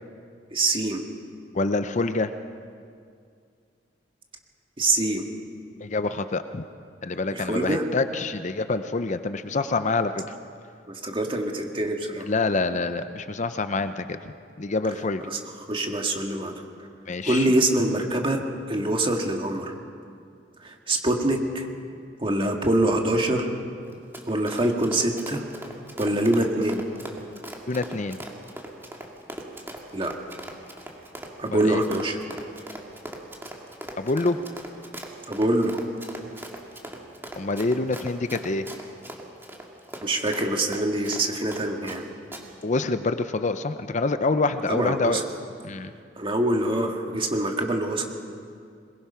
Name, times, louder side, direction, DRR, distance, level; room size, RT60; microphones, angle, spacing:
voice 1, 0.5-1.1 4.8-5.2 7.3-7.8 10.9-12.3 15.2-16.9 17.2-19.8 20.6-21.7 22.2-23.5 24.3-25.4 26.0-26.8 29.9-30.4 31.4-32.2 35.3-35.8 40.0-42.1 44.7-45.2 46.2-48.0, right 1 dB, 30° right, 2 dB, 1.9 m, -25 dB
voice 2, 1.5-2.3 5.8-6.6 7.0-10.2 12.3-14.2 14.6-15.2 17.1-17.5 27.7-28.2 31.5-31.8 34.0-34.4 37.4-38.6 42.6-45.2 45.6-45.9, left 3 dB, 40° left, 10 dB, 0.6 m, -26 dB
Run, 23.9-42.0 42.3-42.4, right 1 dB, 15° right, 2.2 m, -40 dB
22.0 x 21.0 x 5.7 m, 2.3 s
head